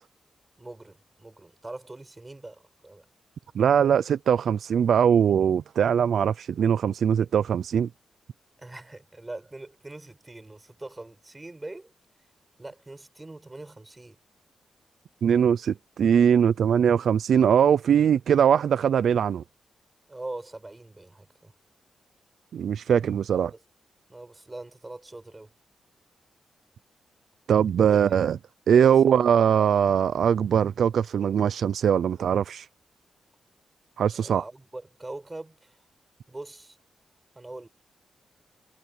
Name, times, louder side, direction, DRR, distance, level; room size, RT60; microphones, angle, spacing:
voice 1, 0.6-3.1 8.6-11.9 12.6-14.2 20.1-21.5 23.3-23.6 24.1-25.5 27.8-28.2 28.9-29.2 34.1-35.8 36.3-36.8 37.4-37.7, right 2 dB, 15° right, 7.0 m, -42 dB
voice 2, 3.5-7.9 15.2-19.4 22.5-23.5 27.5-28.4 28.7-32.7 34.0-34.4, right 8 dB, 75° right, 0.5 m, -21 dB
wide cardioid pair, 135°, 0 cm